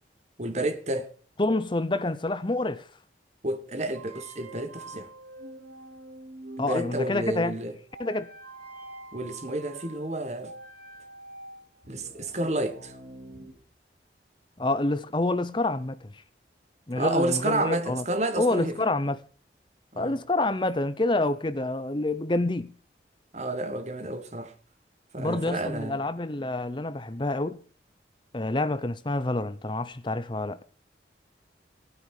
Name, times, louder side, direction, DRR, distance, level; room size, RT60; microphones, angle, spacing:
voice 1, 0.4-1.1 3.4-5.1 6.6-7.7 9.1-10.5 11.9-12.9 16.9-18.8 19.9-20.2 23.3-24.5 25.1-26.0, right 1 dB, 40° right, 1.6 m, -30 dB
voice 2, 1.4-2.9 6.6-7.5 8.0-8.3 14.6-16.2 16.9-18.0 18.4-19.2 20.0-22.7 25.2-27.6 28.3-30.6, left 2 dB, 25° left, 0.7 m, -27 dB
sound 1, 3.9-13.5, right 2 dB, 55° right, 5.1 m, -45 dB
16.5 x 9.6 x 6.6 m
head